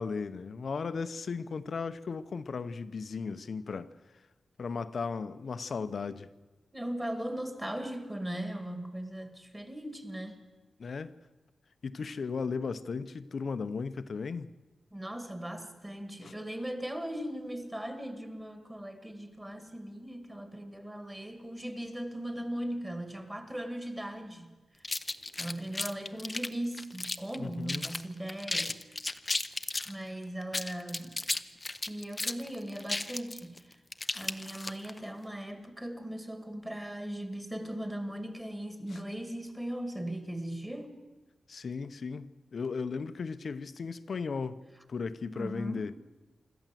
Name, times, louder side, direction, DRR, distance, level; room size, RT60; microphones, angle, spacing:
voice 1, 0.0-3.9 4.6-6.3 10.8-11.1 11.8-14.6 16.2-16.3 27.4-27.9 38.9-39.0 41.5-44.6 44.9-45.9, left 5 dB, 50° left, 0.8 m, -36 dB
voice 2, 6.7-10.4 14.9-24.5 25.4-28.8 29.9-31.2 31.9-33.8 34.1-40.9 45.3-45.9, right 1 dB, 10° right, 2.1 m, -38 dB
sound 1, 24.8-27.4 27.7-28.0 28.3-29.9 30.4-35.0, left 2 dB, 15° left, 0.7 m, -34 dB
26.0 x 13.5 x 7.6 m
wide cardioid pair, 165°, 0 cm